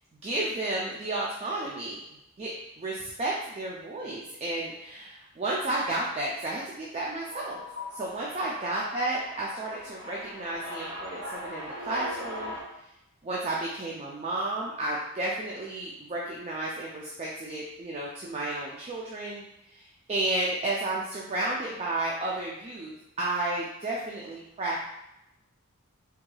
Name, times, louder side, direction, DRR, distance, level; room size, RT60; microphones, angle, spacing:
voice 1, 0.2-2.0 2.4-7.6 7.9-12.6 13.2-24.8, right 2 dB, 30° right, -4 dB, 0.3 m, -32 dB
sound 1, 7.0-12.6, left 1 dB, 55° right, 1.1 m, -40 dB
3.4 x 3.1 x 2.2 m, 0.86 s
head